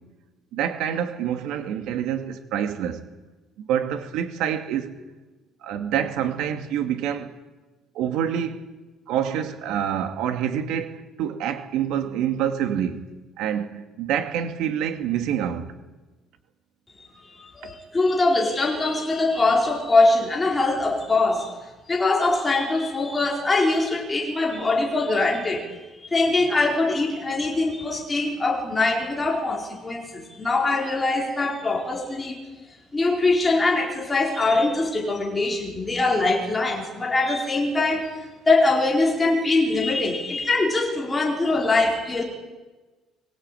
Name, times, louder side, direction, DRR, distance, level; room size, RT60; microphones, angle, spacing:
voice 1, 0.5-3.0 3.6-5.0 5.6-7.3 7.9-8.6 9.1-13.0 13.4-15.7, right 9 dB, 75° right, 2.4 m, -27 dB
voice 2, 17.3-21.5 21.9-25.7 26.1-32.4 32.9-38.1 38.5-42.2, left 2 dB, 15° left, 4.5 m, -22 dB
23.0 x 21.5 x 9.3 m
cardioid pair, 175°, 0 cm